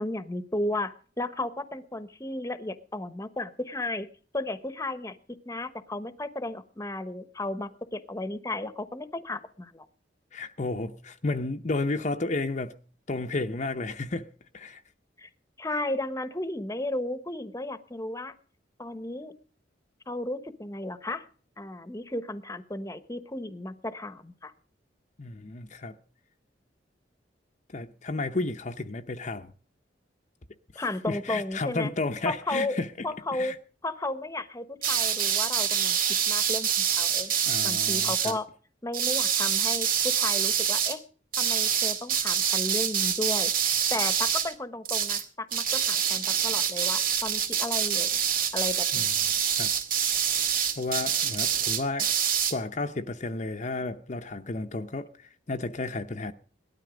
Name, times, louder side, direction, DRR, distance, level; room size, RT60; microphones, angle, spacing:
voice 1, 0.0-4.1 4.3-5.2 5.4-9.9 15.2-15.3 15.6-18.3 18.8-19.3 20.1-21.2 21.6-24.5 30.7-31.9 32.2-32.8 33.0-33.6 33.8-36.0 36.3-37.3 37.6-38.5 38.8-41.0 41.4-48.2 48.5-49.1, left 2 dB, 15° left, 1.1 m, -34 dB
voice 2, 10.3-12.8 13.1-14.3 14.5-14.8 25.2-26.0 27.7-29.5 30.7-33.1 33.3-33.6 37.5-38.4 48.9-49.1 49.6-49.7 50.8-52.1 52.5-56.3, left 3 dB, 40° left, 0.8 m, -32 dB
sound 1, 34.8-38.3 38.9-40.9 41.3-44.5 44.8-45.2 45.5-52.5, right 8 dB, 50° right, 2.2 m, -26 dB
18.0 x 13.0 x 5.1 m
head